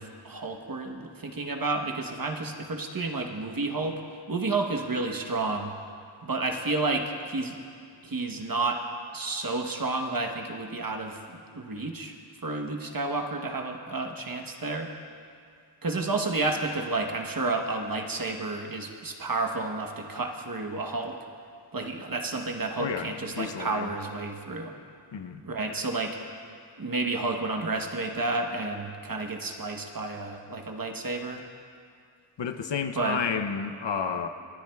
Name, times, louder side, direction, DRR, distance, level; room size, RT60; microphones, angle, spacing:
voice 1, 0.0-4.0 4.3-5.7 6.2-7.6 8.0-8.8 9.1-11.2 11.5-12.1 12.4-14.9 15.8-21.2 21.7-24.7 25.4-26.2 26.8-31.4 32.9-33.2, right 3 dB, 45° right, 3 dB, 1.0 m, -31 dB
voice 2, 22.8-23.9 25.1-25.4 32.4-34.3, left 6 dB, 65° left, 8 dB, 0.7 m, -31 dB
26.0 x 10.5 x 2.3 m, 2.3 s
wide cardioid pair, 90°, 46 cm